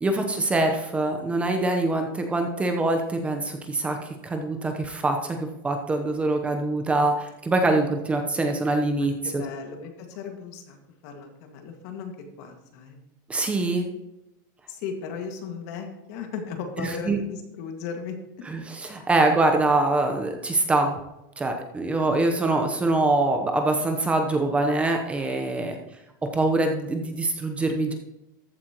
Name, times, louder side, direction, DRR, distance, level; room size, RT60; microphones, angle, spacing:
voice 1, 0.0-9.4 13.3-13.9 16.8-17.2 18.4-21.0 21.4-25.8 26.3-27.9, right 2 dB, 10° right, 4 dB, 0.9 m, -24 dB
voice 2, 8.9-10.8 11.0-12.1 12.4-13.0 14.7-18.2 25.7-25.8, left 6 dB, 55° left, 4 dB, 2.0 m, -36 dB
14.0 x 8.6 x 3.0 m, 0.91 s
supercardioid pair, 155°, 11 cm